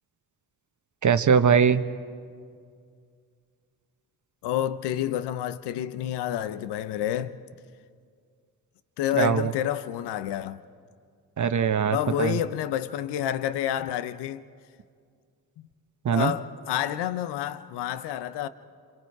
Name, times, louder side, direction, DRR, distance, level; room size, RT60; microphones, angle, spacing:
voice 1, 1.0-1.8 9.2-9.5 11.4-12.4 16.0-16.3, right 7 dB, 45° right, 1.1 m, -21 dB
voice 2, 4.4-7.4 9.0-10.6 11.9-14.5 16.1-18.5, left 11 dB, 85° left, 0.8 m, -29 dB
28.5 x 26.0 x 4.7 m
supercardioid pair, 55°, 40 cm